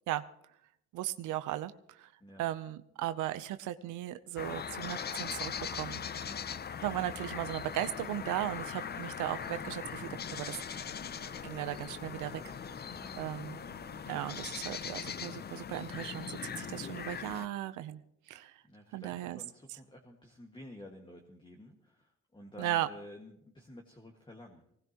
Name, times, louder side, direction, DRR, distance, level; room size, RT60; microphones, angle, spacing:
voice 1, 0.9-2.1 2.4-6.0 6.8-10.6 11.4-12.3 13.2-13.6 14.1-18.0 18.3-18.6 18.9-19.4 22.6-22.9, right 13 dB, 90° right, 11 dB, 0.7 m, -37 dB
sound 1, 4.4-17.5, left 7 dB, 35° left, 0.5 m, -40 dB
voice 2, 6.2-6.6 12.8-13.3 18.7-24.8, equal, 15° left, 1 dB, 1.8 m, -51 dB
sound 2, 9.2-15.1, right 6 dB, 40° right, 1.1 m, -56 dB
20.5 x 18.5 x 3.0 m, 0.75 s
cardioid pair, 90°, 30 cm